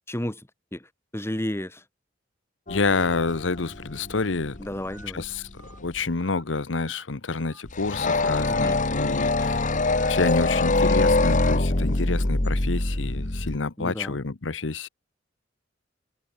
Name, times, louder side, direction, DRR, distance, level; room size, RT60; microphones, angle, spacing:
voice 1, 0.1-0.4 0.7-0.9 1.1-1.8 4.6-5.2 8.5-8.8 13.8-14.2, left 1 dB, 15° left, 2.3 m, -32 dB
voice 2, 2.7-4.6 5.1-5.5 5.8-9.7 10.1-14.9, left 3 dB, 80° left, 1.0 m, -28 dB
sound 1, 2.7-5.4 5.6-6.0 7.7-13.6, left 2 dB, 45° left, 1.8 m, -24 dB
Telephone, 3.2-3.4 4.1-4.3 4.9-5.1 5.6-5.8 6.2-6.4 6.8-7.0 7.4-7.6 8.0-8.1 8.4-8.6 8.9-9.1 9.4-9.6 9.9-10.2, right 2 dB, 15° right, 3.8 m, -49 dB
head